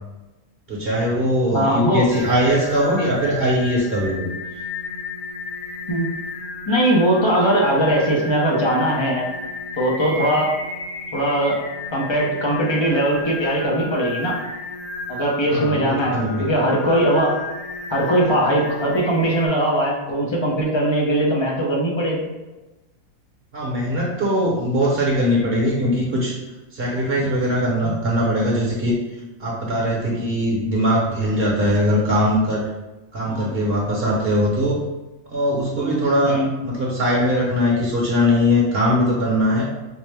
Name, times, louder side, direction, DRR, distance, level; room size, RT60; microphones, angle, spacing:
voice 1, 0.7-4.3 15.5-16.4 23.5-26.3 26.7-29.0 29.4-32.6 33.1-34.8 35.3-39.6, equal, 50° right, -3 dB, 0.9 m, -21 dB
voice 2, 1.5-2.0 2.5-2.6 5.9-6.1 6.7-9.2 9.8-10.5 11.1-11.6 11.9-14.4 15.1-17.3 17.9-22.3 27.2-27.3 27.8-28.0 33.3-33.5 35.7-36.5, right 1 dB, 40° left, -2 dB, 0.4 m, -20 dB
Singing, 2.1-19.5, left 2 dB, 80° left, 1.2 m, -33 dB
5.2 x 2.1 x 3.2 m, 1.1 s
omnidirectional pair, 1.5 m